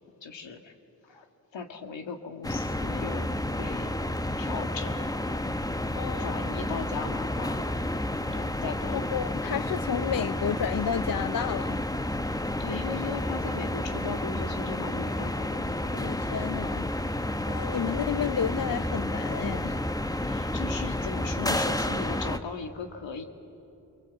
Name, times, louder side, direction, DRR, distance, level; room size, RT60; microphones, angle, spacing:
voice 1, 0.2-0.7 1.1-1.3 1.5-3.3 3.6-4.1 4.4-5.1 6.2-7.7 8.3-9.2 12.6-16.0 20.0-23.2, left 5 dB, 75° left, 5 dB, 2.0 m, -38 dB
sound 1, 2.4-22.4, left 1 dB, 10° left, 0.9 m, -30 dB
voice 2, 5.9-6.6 8.9-11.8 15.9-16.9 17.5-19.8, left 8 dB, 50° left, 12 dB, 0.7 m, -31 dB
26.5 x 23.0 x 8.3 m, 2.8 s
supercardioid pair, 40°, 44 cm